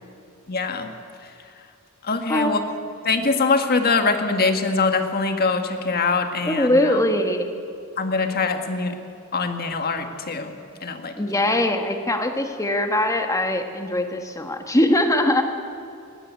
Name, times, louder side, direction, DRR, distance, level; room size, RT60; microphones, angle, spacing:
voice 1, 0.5-0.9 2.0-2.6 3.0-7.0 8.0-9.0 9.3-10.5 10.8-11.1 11.5-11.6, left 4 dB, 45° left, 6 dB, 1.7 m, -23 dB
voice 2, 6.5-7.5 11.2-15.4, left 1 dB, 15° left, 5 dB, 1.5 m, -21 dB
20.0 x 15.5 x 9.6 m, 2.5 s
head